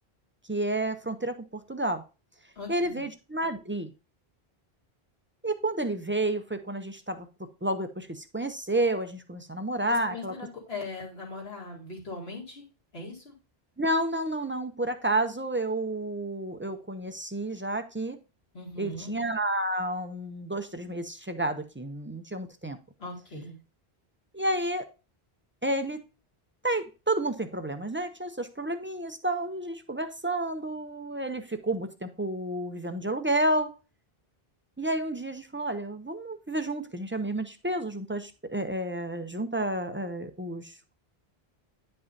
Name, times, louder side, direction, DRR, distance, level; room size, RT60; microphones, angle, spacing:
voice 1, 0.5-2.0 2.7-3.9 5.4-7.3 7.6-10.3 13.8-18.2 18.8-22.8 24.3-24.9 25.6-26.0 26.6-33.7 34.8-40.9, right 1 dB, 20° right, 8 dB, 0.3 m, -30 dB
voice 2, 2.6-3.0 9.9-12.7 12.9-13.3 18.5-19.1 23.0-23.6, left 3 dB, 75° left, -4 dB, 2.6 m, -40 dB
9.8 x 5.4 x 2.6 m, 0.31 s
omnidirectional pair, 1.1 m